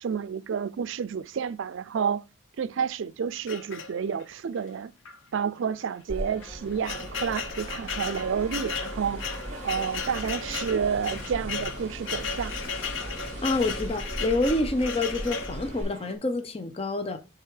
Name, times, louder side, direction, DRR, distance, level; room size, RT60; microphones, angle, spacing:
voice 1, 0.0-2.2 2.6-4.9 5.3-9.2 9.6-12.6, right 7 dB, 70° right, 0.4 m, -30 dB
sound 1, 3.5-4.3 5.0-5.2 5.5-5.6 6.3-15.6, left 5 dB, 75° left, 0.7 m, -35 dB
sound 2, 6.1-15.8, equal, 10° left, 3.0 m, -39 dB
sound 3, 6.8-16.2, right 1 dB, 35° right, 0.8 m, -45 dB
voice 2, 13.4-17.2, left 2 dB, 30° left, 0.6 m, -27 dB
6.8 x 3.4 x 4.7 m
head